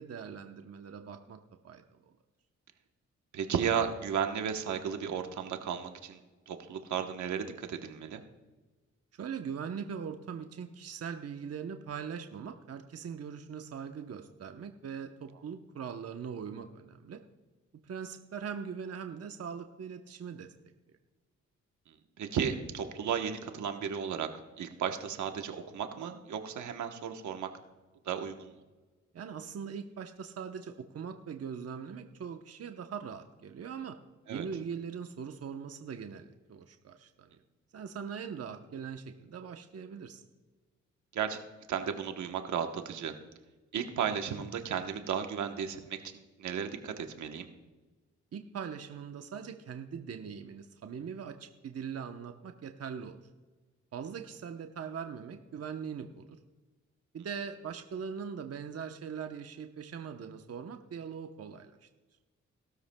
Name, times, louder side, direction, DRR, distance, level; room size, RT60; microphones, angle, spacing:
voice 1, 0.0-1.4 1.6-2.1 9.1-17.2 17.8-20.5 29.1-34.0 34.3-37.3 37.7-40.2 48.3-53.2 53.9-56.4 57.1-61.9, right 7 dB, 55° right, 6 dB, 0.9 m, -41 dB
voice 2, 3.3-6.2 6.5-8.2 22.2-24.3 24.6-27.5 28.0-28.5 34.3-34.5 41.1-41.4 41.7-43.1 43.7-46.0 46.4-47.5, right 7 dB, 80° right, 6 dB, 1.1 m, -34 dB
18.5 x 13.0 x 2.3 m, 1.3 s
cardioid pair, 55°, 29 cm